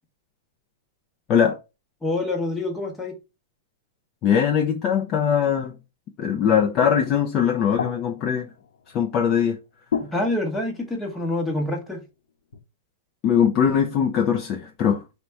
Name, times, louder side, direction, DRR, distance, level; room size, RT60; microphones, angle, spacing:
voice 1, 2.0-3.1 10.1-12.0, left 2 dB, 5° left, 0.8 m, -26 dB
voice 2, 4.2-5.7 6.2-8.5 8.9-9.6 13.2-15.0, left 8 dB, 25° left, 0.4 m, -21 dB
sound 1, 6.8-9.5 9.9-11.5 12.5-12.6, left 7 dB, 80° left, 0.8 m, -34 dB
4.0 x 2.2 x 4.5 m
supercardioid pair, 165°, 0 cm